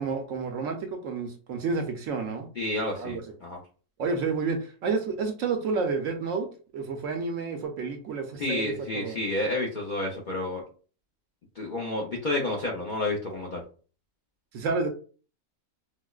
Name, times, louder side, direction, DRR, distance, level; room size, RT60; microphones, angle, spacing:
voice 1, 0.0-2.5 3.0-3.2 4.0-6.5 6.7-9.2 14.5-14.9, right 4 dB, 70° right, 5 dB, 1.0 m, -30 dB
voice 2, 2.6-3.6 8.4-10.6 11.6-13.6, left 2 dB, 55° left, -1 dB, 0.5 m, -30 dB
5.0 x 2.0 x 2.3 m, 0.38 s
omnidirectional pair, 1.5 m